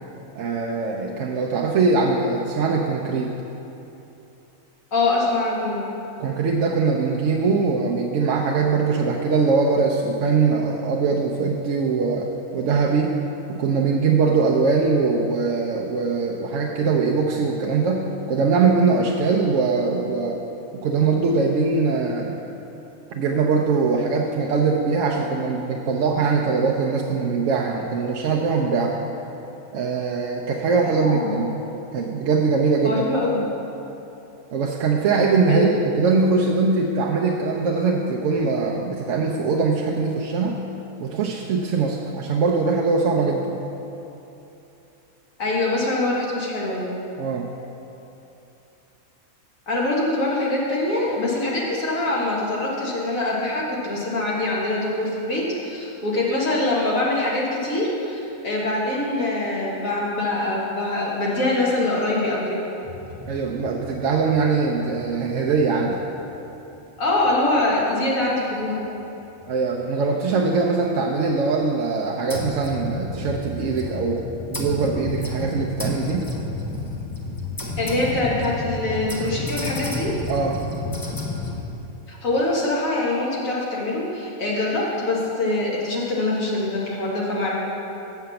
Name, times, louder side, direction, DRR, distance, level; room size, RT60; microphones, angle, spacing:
voice 1, 0.3-3.3 6.2-13.1 13.5-20.4 20.7-22.4 23.1-29.0 29.7-31.5 31.9-33.0 34.5-40.6 41.0-43.6 47.2-47.5 63.3-66.0 69.5-74.2 74.5-76.3 80.3-80.6, right 4 dB, 65° right, -1 dB, 0.9 m, -22 dB
voice 2, 4.9-5.9 30.9-31.4 32.8-33.5 35.5-35.8 45.4-46.8 49.7-62.6 67.0-68.9 77.8-80.2 82.1-87.5, left 2 dB, 65° left, -5 dB, 2.0 m, -24 dB
sound 1, 62.8-66.8 67.2-67.3 67.8-67.9 68.2-68.4 69.4-69.5 70.0-70.1 72.3-81.6, left 2 dB, 20° left, 0.6 m, -31 dB
7.6 x 5.8 x 6.9 m, 3.0 s
omnidirectional pair, 1.5 m